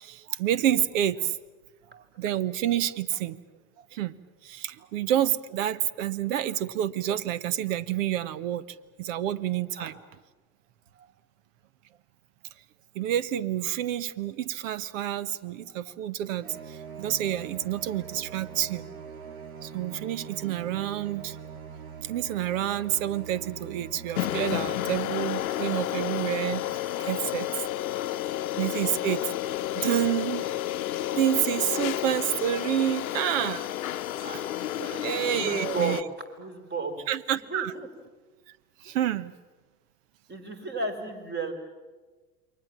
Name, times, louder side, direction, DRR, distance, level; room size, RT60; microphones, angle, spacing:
voice 1, 0.0-1.4 1.9-3.4 3.9-4.2 4.4-10.0 12.9-18.8 19.6-21.4 22.0-26.6 27.0-27.6 28.6-29.2 29.7-30.5 31.1-33.7 34.3-34.4 35.0-36.0 37.1-37.7 38.8-39.3, right 11 dB, 65° right, 18 dB, 1.2 m, -28 dB
sound 1, 16.4-24.9, right 7 dB, 85° right, 2.4 m, -42 dB
sound 2, 24.2-36.0, left 13 dB, 80° left, 0.9 m, -31 dB
voice 2, 34.7-36.1 36.4-37.1 37.5-37.9 38.8-39.0 40.3-41.5, right 3 dB, 25° right, 7 dB, 4.6 m, -34 dB
28.5 x 23.0 x 7.4 m, 1.3 s
hypercardioid pair, 90°, 41 cm